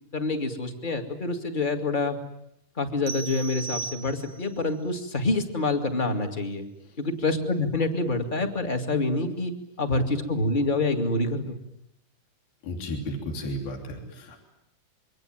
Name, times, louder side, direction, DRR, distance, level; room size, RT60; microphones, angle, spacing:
voice 1, 0.1-2.2 2.8-6.6 7.0-9.5 9.8-11.6, left 2 dB, 20° left, 6 dB, 1.5 m, -27 dB
sound 1, 3.1-4.6, right 4 dB, 50° right, 1.7 m, -36 dB
voice 2, 12.6-14.4, left 1 dB, 65° left, 3 dB, 5.0 m, -33 dB
27.0 x 24.0 x 9.1 m, 0.78 s
omnidirectional pair, 4.6 m